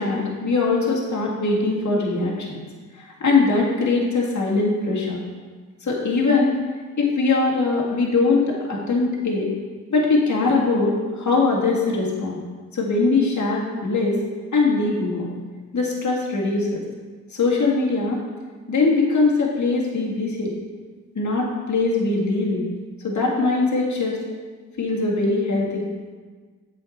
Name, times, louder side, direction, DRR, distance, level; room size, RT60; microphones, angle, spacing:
voice 1, 0.0-2.6 2.9-5.2 5.8-6.5 7.0-9.5 9.9-12.4 12.7-14.2 14.5-15.3 15.7-16.8 17.3-18.2 18.7-20.5 21.2-22.7 23.0-24.2 24.8-25.8, left 3 dB, 50° left, -3 dB, 1.9 m, -21 dB
8.2 x 5.0 x 4.2 m, 1.5 s
supercardioid pair, 50°, 36 cm